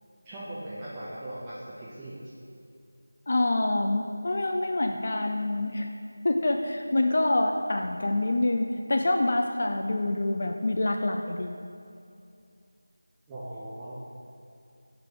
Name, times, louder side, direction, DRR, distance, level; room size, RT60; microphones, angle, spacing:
voice 1, 0.2-2.3 13.3-14.0, right 1 dB, 10° right, -11 dB, 0.5 m, -39 dB
voice 2, 3.3-5.9 6.2-11.6, left 2 dB, 50° left, 3 dB, 0.3 m, -26 dB
5.7 x 3.3 x 5.0 m, 2.5 s
figure-of-eight pair, 170°, 0 cm